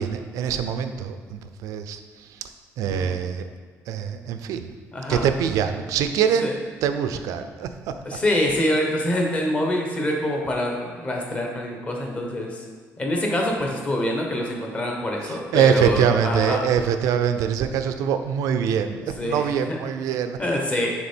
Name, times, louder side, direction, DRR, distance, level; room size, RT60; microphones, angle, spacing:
voice 1, 0.0-2.4 2.8-3.5 3.9-4.7 5.1-6.5 6.8-8.0 15.2-20.4, right 8 dB, 85° right, 8 dB, 0.4 m, -24 dB
voice 2, 4.9-5.2 6.4-6.5 8.1-12.6 13.0-16.6 19.2-19.4 19.7-19.8 20.4-20.9, left 1 dB, 20° left, 0 dB, 0.8 m, -25 dB
6.9 x 3.5 x 4.4 m, 1.5 s
cardioid pair, 180°, 6 cm